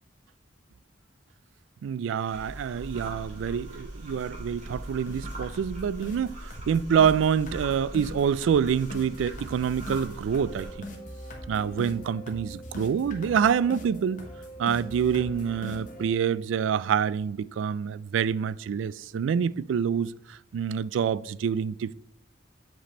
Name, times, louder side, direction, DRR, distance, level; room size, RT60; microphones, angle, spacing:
voice 1, 1.8-10.9 11.5-14.2 14.6-21.9, right 7 dB, 90° right, 0.3 m, -26 dB
sound 1, 2.2-10.7, right 1 dB, 40° right, 2.2 m, -41 dB
sound 2, 3.6-3.7 4.1-4.3 4.6-4.7 5.1-16.1, equal, 45° left, 1.2 m, -42 dB
7.8 x 5.1 x 4.2 m
head